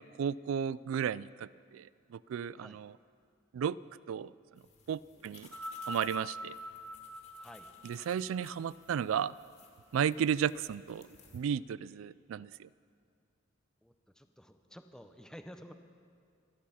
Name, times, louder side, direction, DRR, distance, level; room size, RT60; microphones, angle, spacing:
voice 1, 0.0-2.9 3.5-3.8 4.1-4.3 4.9-5.5 5.9-6.6 7.8-9.3 9.9-11.1 11.3-12.7, right 8 dB, 70° right, 20 dB, 0.3 m, -34 dB
sound 1, 4.6-11.4, left 5 dB, 35° left, 2.0 m, -60 dB
voice 2, 5.1-5.5 7.4-7.7 13.8-15.7, equal, 5° left, 7 dB, 0.6 m, -52 dB
sound 2, 5.4-9.9 10.8-10.9, left 1 dB, 90° right, 1.5 m, -45 dB
24.0 x 8.6 x 5.7 m, 2.3 s
head